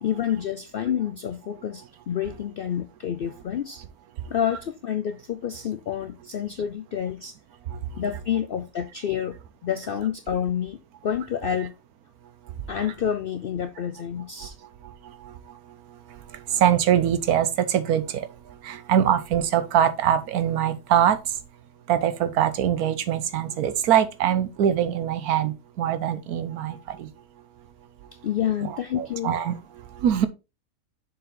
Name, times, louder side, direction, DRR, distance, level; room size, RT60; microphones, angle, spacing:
voice 1, 0.0-3.8 4.3-7.4 8.0-9.4 9.6-10.8 11.0-11.7 12.7-14.5 28.2-29.4, left 9 dB, 70° left, 0.5 m, -28 dB
voice 2, 16.5-18.3 18.6-21.2 21.9-27.1 28.6-29.6 30.0-30.3, right 9 dB, 85° right, 1.3 m, -23 dB
6.7 x 4.7 x 3.7 m
omnidirectional pair, 1.5 m